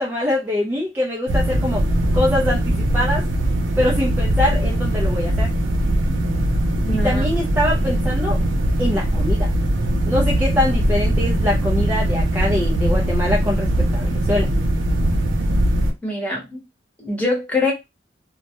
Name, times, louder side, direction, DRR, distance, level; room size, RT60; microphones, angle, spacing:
voice 1, 0.0-1.8 2.1-3.3 3.8-5.5 6.9-8.4 8.8-9.5 10.0-14.5, left 1 dB, 10° right, 0.4 m, -23 dB
sound 1, 1.3-15.9, right 1 dB, 85° right, 0.5 m, -20 dB
voice 2, 6.8-7.3 16.0-16.6 17.0-17.7, left 2 dB, 10° left, 0.9 m, -24 dB
2.2 x 2.1 x 2.8 m
head